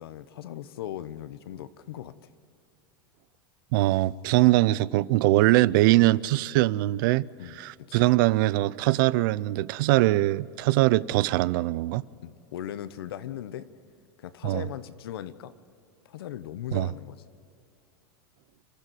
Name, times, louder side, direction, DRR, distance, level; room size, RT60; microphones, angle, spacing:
voice 1, 0.0-2.3 7.4-7.6 7.9-8.1 12.2-13.7 14.2-15.5 16.0-17.2, left 11 dB, 85° left, 1.1 m, -38 dB
voice 2, 3.7-7.3 7.6-12.0 14.4-14.6 16.7-16.9, right 17 dB, 65° right, 0.5 m, -22 dB
29.0 x 13.5 x 7.7 m
supercardioid pair, 140°, 12 cm